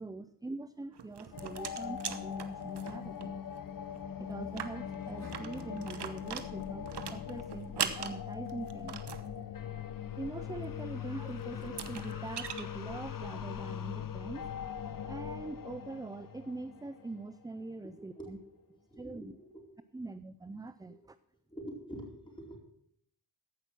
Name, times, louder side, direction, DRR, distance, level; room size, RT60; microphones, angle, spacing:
voice 1, 0.0-3.4 4.1-9.0 10.2-14.5 15.1-18.4 19.0-19.3 19.9-21.2, right 2 dB, 10° right, 13 dB, 0.3 m, -43 dB
sound 1, 0.9-3.3 3.6-3.7 3.9-4.0 4.4-9.3 11.0-11.1 11.6-12.6, right 8 dB, 65° right, 1.0 m, -40 dB
sound 2, 1.3-17.6, left 8 dB, 50° left, 0.8 m, -41 dB
Acoustic guitar / Strum, 5.2-10.6, equal, 40° right, 4.1 m, -56 dB
voice 2, 18.2-18.6 18.9-19.7 20.9-21.0 21.5-22.6, equal, 10° left, -1 dB, 4.4 m, -46 dB
14.5 x 6.0 x 6.0 m, 0.70 s
cardioid pair, 60°, 43 cm